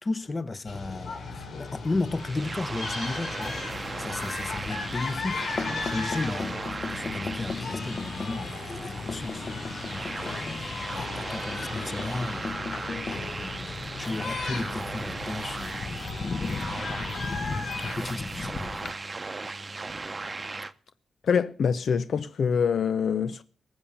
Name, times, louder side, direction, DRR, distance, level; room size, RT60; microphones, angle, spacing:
voice 1, 0.0-3.6 4.0-6.6 6.9-9.5 9.9-10.6 10.9-12.7 13.1-16.1 16.7-16.8 17.8-18.8, left 3 dB, 35° left, 1.0 m, -34 dB
sound 1, 0.7-18.0, left 4 dB, 90° left, 3.6 m, -37 dB
sound 2, 2.1-20.7, right 3 dB, 30° right, 0.8 m, -37 dB
sound 3, 3.4-18.9, left 4 dB, 55° left, 1.3 m, -38 dB
voice 2, 21.2-23.4, left 6 dB, 75° left, 0.6 m, -25 dB
19.5 x 7.2 x 7.2 m
cardioid pair, 85°, 0 cm